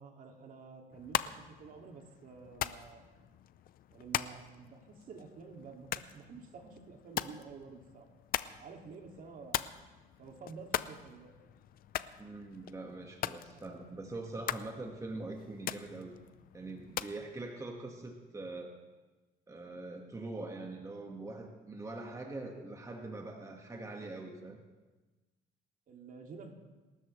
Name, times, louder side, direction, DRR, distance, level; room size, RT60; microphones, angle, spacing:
voice 1, 0.0-3.1 3.9-8.1 8.6-9.7 10.2-11.3 25.9-26.5, right 5 dB, 55° right, 2 dB, 2.4 m, -50 dB
sound 1, 0.9-17.2, left 12 dB, 60° left, 0.6 m, -41 dB
voice 2, 12.2-16.2 16.5-18.7 19.5-24.6, right 2 dB, 20° right, 2 dB, 1.7 m, -43 dB
26.5 x 13.0 x 3.2 m, 1.2 s
cardioid pair, 110°, 17 cm